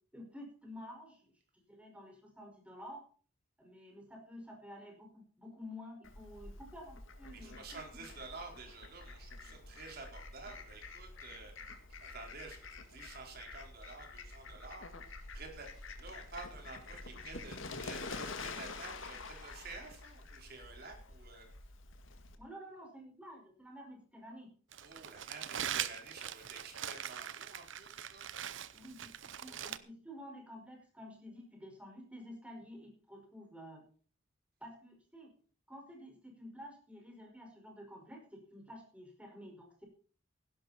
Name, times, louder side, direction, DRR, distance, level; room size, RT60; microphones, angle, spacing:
voice 1, 0.1-3.0 3.6-7.6 7.9-8.0 22.4-24.5 28.7-33.8 34.6-35.3 35.7-39.8, equal, 5° right, 1 dB, 5.3 m, -51 dB
Fowl, 6.0-22.3, left 3 dB, 85° left, 2.0 m, -48 dB
voice 2, 7.3-21.5 24.8-28.3, right 3 dB, 50° right, 2 dB, 4.6 m, -51 dB
Crumpling crinkling, 24.7-29.8, right 10 dB, 70° right, 0.8 m, -41 dB
17.0 x 11.5 x 4.4 m, 0.42 s
head